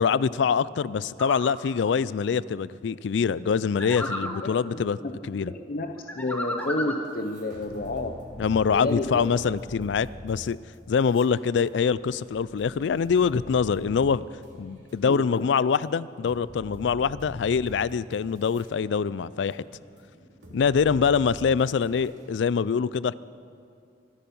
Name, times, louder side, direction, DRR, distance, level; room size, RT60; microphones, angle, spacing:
voice 1, 0.0-5.0 5.3-5.5 8.4-10.6 10.9-14.2 14.6-19.6 20.5-23.1, left 6 dB, 75° left, 19 dB, 0.4 m, -24 dB
sound 1, 1.2-1.5 3.8-4.4 6.1-7.1, left 1 dB, 10° left, 1.1 m, -32 dB
voice 2, 4.3-5.1 5.4-8.2 8.7-9.3 15.0-15.5, left 2 dB, 55° left, 5 dB, 0.7 m, -31 dB
sound 2, 6.6-6.7 7.1-15.4 15.8-15.9 16.3-18.7 19.1-22.3, equal, 70° right, 3.1 m, -45 dB
24.0 x 10.0 x 5.5 m, 2.3 s
head